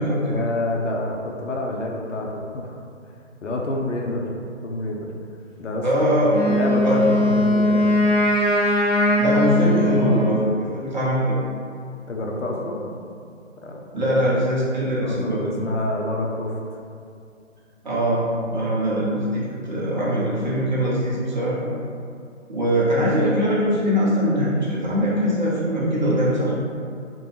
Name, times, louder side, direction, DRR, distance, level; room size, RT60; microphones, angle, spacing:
voice 1, 0.3-2.7 3.4-4.3 4.6-5.1 5.6-6.1 6.4-8.2 9.7-10.3 12.1-12.8 13.6-14.2 15.0-16.6, left 1 dB, 70° left, 0 dB, 0.6 m, -28 dB
voice 2, 5.8-6.6 6.8-7.2 9.2-10.4 10.7-11.4 13.9-15.4 17.8-18.2 18.5-21.7 22.5-26.5, equal, 35° right, -7 dB, 0.6 m, -22 dB
Wind instrument woodwind instrument, 6.3-10.4, left 1 dB, 35° left, 1.4 m, -20 dB
2.5 x 2.2 x 3.1 m, 2.4 s
figure-of-eight pair, 140°, 38 cm